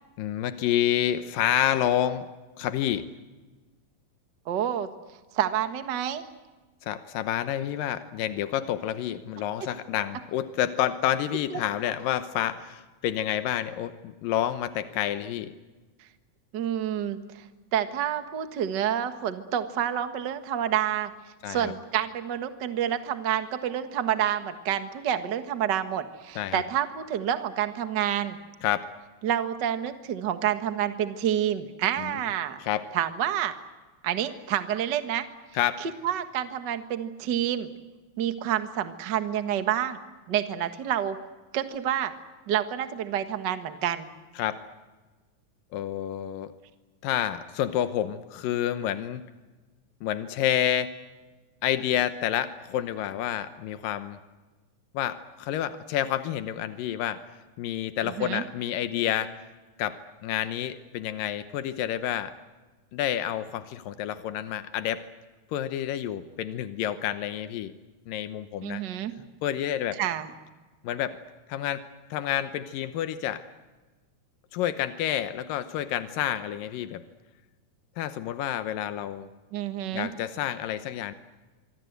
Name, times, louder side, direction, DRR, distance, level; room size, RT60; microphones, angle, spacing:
voice 1, 0.2-2.3 2.6-3.1 6.8-15.6 21.4-21.7 26.4-26.6 28.6-28.8 32.0-32.1 32.6-32.8 35.6-35.7 44.4-44.5 45.7-46.5 47.0-49.2 50.0-50.9 51.6-54.2 54.9-57.2 57.6-59.3 59.8-62.3 62.9-65.0 65.5-67.7 68.1-68.8 69.4-70.0 70.8-71.2 71.5-71.8 72.1-73.4 74.5-77.0 78.0-79.3 79.9-81.1, left 11 dB, 85° left, 11 dB, 2.7 m, -29 dB
voice 2, 4.4-4.9 5.3-6.2 11.5-11.6 16.0-16.1 16.5-17.5 17.7-21.1 21.5-28.4 29.2-32.6 32.9-33.5 34.0-35.2 35.8-37.7 38.2-40.0 40.3-41.2 41.5-42.1 42.5-44.1 58.0-58.4 68.6-69.1 69.9-70.3 79.5-80.1, right 10 dB, 45° right, 9 dB, 1.6 m, -28 dB
25.0 x 25.0 x 8.1 m, 1.3 s
omnidirectional pair, 3.8 m